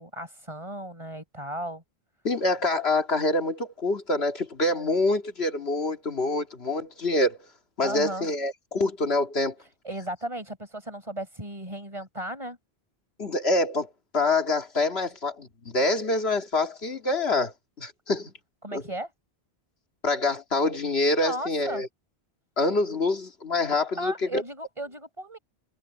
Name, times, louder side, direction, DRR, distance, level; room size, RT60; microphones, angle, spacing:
voice 1, 0.0-1.8 7.8-8.3 9.8-12.6 18.6-19.1 21.2-21.8 24.0-25.4, right 1 dB, 30° right, 4.9 m, -35 dB
voice 2, 2.2-7.4 7.8-9.5 13.2-13.9 14.1-17.5 17.8-18.3 18.7-18.8 20.0-21.9 22.6-24.4, left 2 dB, 80° left, 2.3 m, -26 dB
omnidirectional pair, 1.0 m